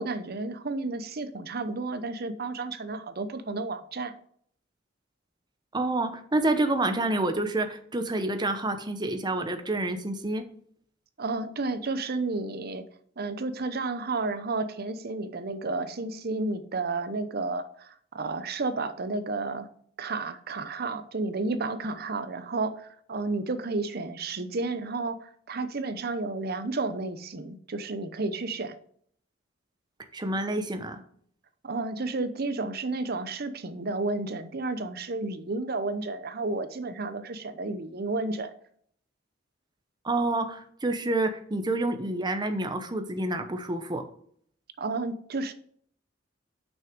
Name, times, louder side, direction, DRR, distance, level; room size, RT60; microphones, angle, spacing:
voice 1, 0.0-4.1 11.2-12.8 13.2-19.7 20.0-28.8 31.6-38.5 44.8-45.5, right 3 dB, 55° right, 11 dB, 0.8 m, -32 dB
voice 2, 5.7-10.4 30.1-31.0 40.0-44.0, right 2 dB, 25° right, 7 dB, 0.9 m, -28 dB
6.4 x 6.0 x 5.2 m, 0.62 s
head